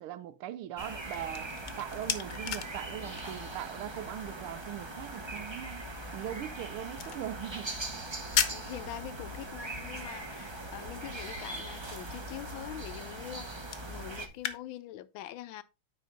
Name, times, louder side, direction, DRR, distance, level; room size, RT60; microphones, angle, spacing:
voice 1, 0.0-5.9 6.1-7.7, right 12 dB, 90° right, 1.5 m, -40 dB
sound 1, 0.8-14.3, right 2 dB, 25° right, 0.6 m, -41 dB
sound 2, 0.9-14.6, left 9 dB, 60° left, 1.2 m, -40 dB
voice 2, 8.5-15.6, left 13 dB, 75° left, 1.3 m, -44 dB
9.2 x 5.3 x 3.8 m
omnidirectional pair, 2.3 m